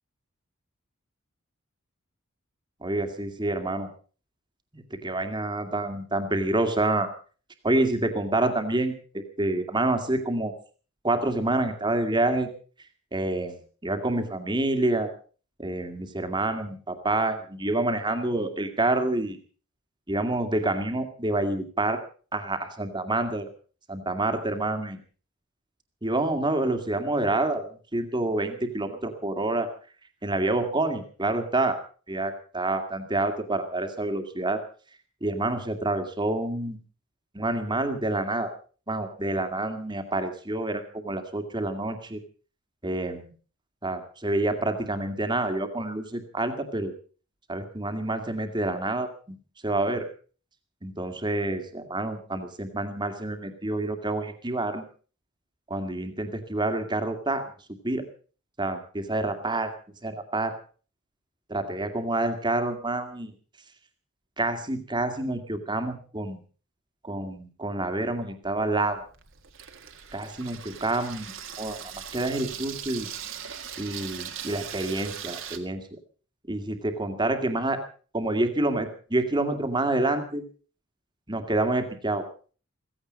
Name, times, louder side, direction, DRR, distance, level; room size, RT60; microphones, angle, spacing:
voice 1, 2.8-3.9 4.7-7.1 7.6-10.5 11.0-12.5 13.1-15.1 15.6-19.4 20.1-22.0 22.3-23.5 23.9-25.0 26.0-29.7 30.2-31.8 32.1-34.6 35.2-36.8 37.3-38.5 38.9-42.2 42.8-43.3 43.8-46.9 47.5-49.4 49.6-50.0 50.8-54.8 55.7-57.4 57.8-58.1 58.6-59.7 60.0-60.5 61.5-63.3 64.4-66.4 67.0-69.0 70.1-73.1 73.8-75.8 76.5-77.8 78.1-80.4 81.3-82.2, right 2 dB, 20° right, 6 dB, 2.1 m, -28 dB
Water tap faucet / Sink (filling or washing), 68.5-75.6, right 9 dB, 60° right, 1.9 m, -40 dB
16.0 x 16.0 x 5.3 m, 0.40 s
head